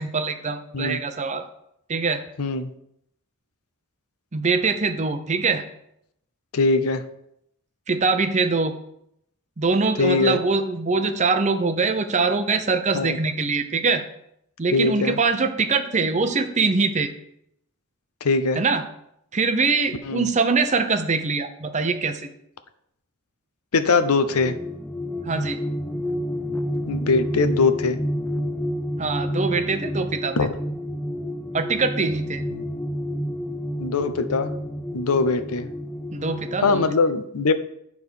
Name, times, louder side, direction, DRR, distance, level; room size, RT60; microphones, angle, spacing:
voice 1, 0.0-1.4 1.9-2.2 4.3-5.6 7.9-8.7 9.6-14.0 14.6-17.1 18.6-18.8 19.3-22.3 25.2-25.6 29.0-30.4 31.5-32.5 36.1-36.8, right 4 dB, 30° right, 7 dB, 0.6 m, -23 dB
voice 2, 2.4-2.7 6.5-7.0 10.0-10.4 12.9-13.2 14.7-15.2 18.2-18.6 20.0-20.3 23.7-24.6 26.9-28.0 30.4-30.6 32.5-32.6 33.8-34.5 34.9-35.7 36.6-37.5, left 4 dB, 80° left, 11 dB, 0.6 m, -21 dB
sound 1, 24.1-36.9, equal, 10° left, 0.4 m, -29 dB
9.8 x 3.6 x 6.3 m, 0.76 s
head